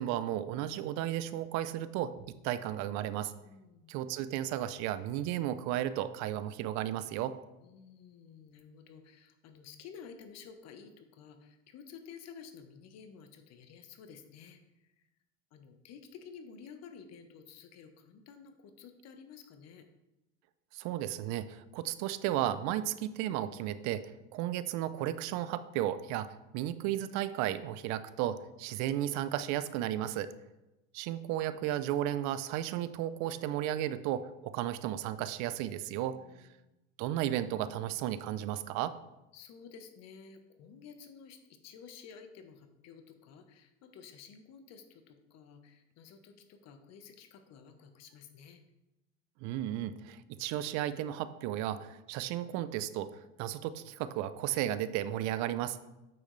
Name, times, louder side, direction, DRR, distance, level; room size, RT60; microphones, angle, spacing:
voice 1, 0.0-3.3 3.9-7.3 20.7-30.3 30.9-36.2 37.0-39.0 49.4-55.8, right 12 dB, 55° right, 13 dB, 0.6 m, -34 dB
voice 2, 3.4-3.9 7.6-14.9 15.5-19.9 30.3-30.4 36.2-36.8 39.3-48.6, left 6 dB, 50° left, 7 dB, 1.2 m, -52 dB
8.8 x 6.3 x 3.3 m, 0.98 s
hypercardioid pair, 95°, 34 cm